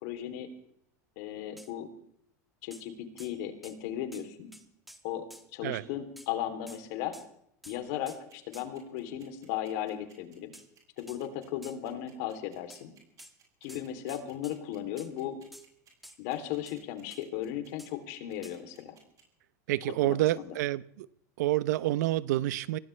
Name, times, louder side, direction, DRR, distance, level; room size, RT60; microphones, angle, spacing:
voice 1, 0.0-0.5 1.2-1.9 2.6-4.5 5.0-5.3 5.5-7.1 7.7-10.5 11.0-12.9 13.6-15.4 16.2-19.0 20.0-20.5, left 11 dB, 65° left, 3.0 m, -36 dB
sound 1, 1.6-1.7 2.7-2.9 3.2-3.4 3.6-3.8 4.1-4.3 4.5-5.5 6.2-6.3 6.7-6.8 7.1-7.3 7.6-7.8 8.1-8.2 8.5-8.7 10.5-10.7 11.1-11.2 11.6-11.8 12.7-12.8 13.2-13.3 13.7-14.6 15.0-15.1 15.5-15.7 16.0-16.2 16.7-16.8 17.1-17.2 17.8-17.9 18.4-18.6, equal, ahead, 1.6 m, -51 dB
sound 2, 8.1-19.2, right 8 dB, 40° right, 6.6 m, -61 dB
voice 2, 19.7-21.1 21.4-22.8, right 15 dB, 75° right, 0.7 m, -28 dB
24.5 x 17.5 x 3.3 m
supercardioid pair, 115°, 9 cm